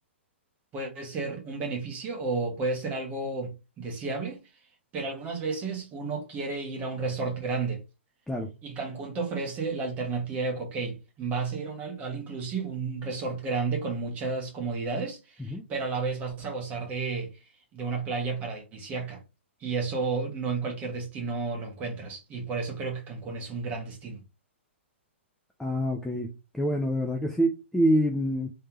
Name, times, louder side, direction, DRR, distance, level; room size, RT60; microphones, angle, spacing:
voice 1, 0.7-4.4 4.9-7.8 8.6-17.3 17.7-19.2 19.6-24.2, right 4 dB, 20° right, 1.4 m, -32 dB
voice 2, 25.6-28.5, equal, ahead, 0.5 m, -26 dB
3.3 x 3.3 x 2.9 m
hypercardioid pair, 140°, 7 cm